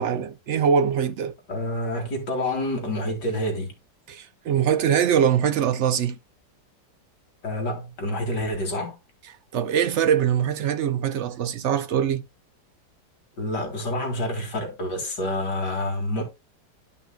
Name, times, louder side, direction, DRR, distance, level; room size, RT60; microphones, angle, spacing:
voice 1, 0.0-1.3 4.1-6.2 9.5-12.2, right 8 dB, 70° right, 0.6 m, -22 dB
voice 2, 1.5-3.7 7.4-9.0 13.4-16.2, left 1 dB, 70° left, 2.9 m, -28 dB
12.0 x 5.5 x 2.2 m
omnidirectional pair, 1.9 m